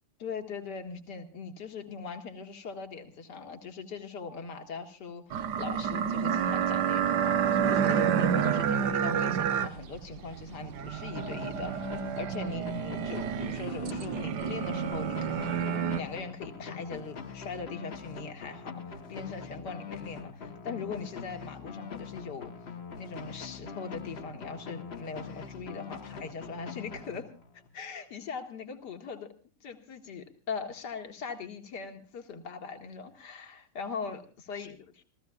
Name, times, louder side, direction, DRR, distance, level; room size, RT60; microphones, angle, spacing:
voice 1, 0.2-15.6 16.0-22.5 23.0-27.3 27.7-29.3 29.6-34.8, left 5 dB, 70° left, 4 dB, 2.6 m, -40 dB
sound 1, 5.3-16.0, right 8 dB, 70° right, 1.5 m, -29 dB
sound 2, 11.2-27.7, left 6 dB, 40° left, 1.2 m, -43 dB
28.5 x 15.5 x 2.4 m, 0.37 s
omnidirectional pair, 1.9 m